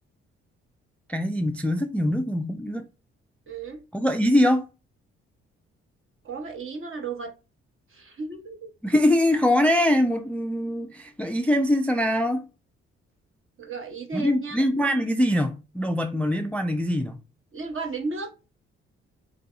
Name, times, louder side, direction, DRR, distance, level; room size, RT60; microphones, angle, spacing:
voice 1, 1.1-2.8 3.9-4.7 8.8-12.5 14.1-17.2, left 1 dB, 5° left, 0.3 m, -23 dB
voice 2, 3.5-3.8 6.2-7.3 7.9-8.7 13.6-14.6 17.5-18.3, right 4 dB, 45° right, 1.0 m, -34 dB
3.3 x 2.6 x 2.4 m
hypercardioid pair, 45°, 30 cm